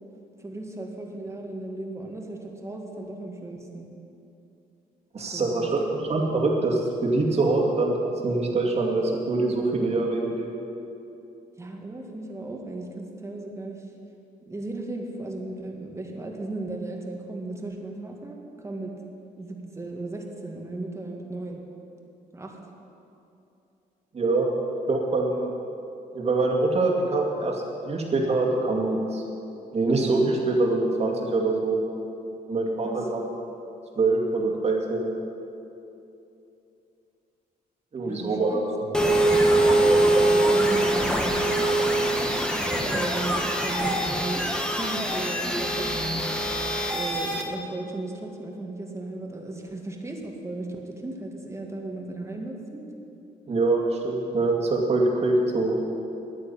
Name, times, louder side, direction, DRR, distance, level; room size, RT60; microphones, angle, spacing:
voice 1, 0.4-3.9 5.3-5.6 11.6-13.9 14.5-18.4 18.6-18.9 19.4-21.6 22.3-22.6 32.8-33.0 38.0-38.6 39.6-46.0 46.9-52.8, right 2 dB, 15° right, 1 dB, 1.9 m, -36 dB
voice 2, 5.1-8.0 8.2-10.5 24.1-24.5 24.9-25.5 26.1-29.2 29.7-31.8 32.5-33.2 34.0-35.1 37.9-38.6 53.5-55.8, right 2 dB, 40° right, -1 dB, 2.5 m, -24 dB
sound 1, 38.9-47.4, right 1 dB, 5° left, 1.4 m, -23 dB
10.5 x 9.9 x 8.7 m, 2.8 s
cardioid pair, 100°, 16 cm